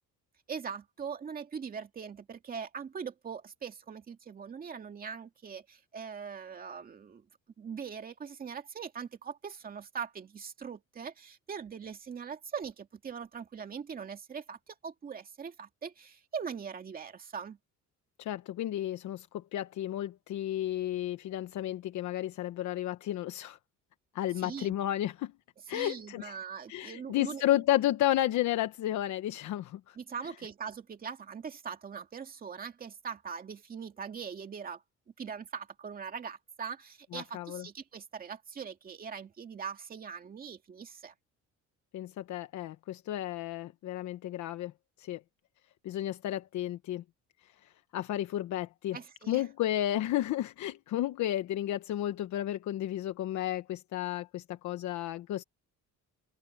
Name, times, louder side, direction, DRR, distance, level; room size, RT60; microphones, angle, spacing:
voice 1, 0.5-7.2 7.6-17.6 24.4-24.7 25.7-27.6 30.0-34.8 35.2-41.1 48.9-49.5, right 6 dB, 30° right, 2.3 m, -41 dB
voice 2, 18.2-23.6 24.1-25.3 25.7-26.3 26.7-30.0 37.1-37.6 41.9-44.7 45.0-45.2 45.8-47.0 47.6-49.0 49.3-55.4, left 13 dB, 65° left, 1.1 m, -32 dB
open air
cardioid pair, 175°, 31 cm